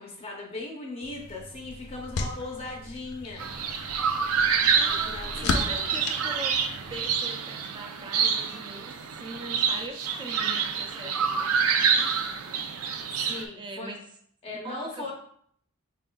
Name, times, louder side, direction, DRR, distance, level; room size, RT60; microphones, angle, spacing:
voice 1, 0.0-3.5 4.9-6.0 11.0-11.5 13.2-13.9 14.4-15.1, left 2 dB, 25° left, -1 dB, 0.7 m, -39 dB
sound 1, 1.0-7.2, left 3 dB, 85° left, 0.5 m, -35 dB
sound 2, 3.4-13.4, right 6 dB, 80° right, 0.4 m, -27 dB
voice 2, 4.7-6.6 6.9-12.7 13.6-14.1 14.6-15.1, right 2 dB, 20° right, 3 dB, 0.4 m, -41 dB
4.7 x 3.7 x 2.2 m, 0.64 s
head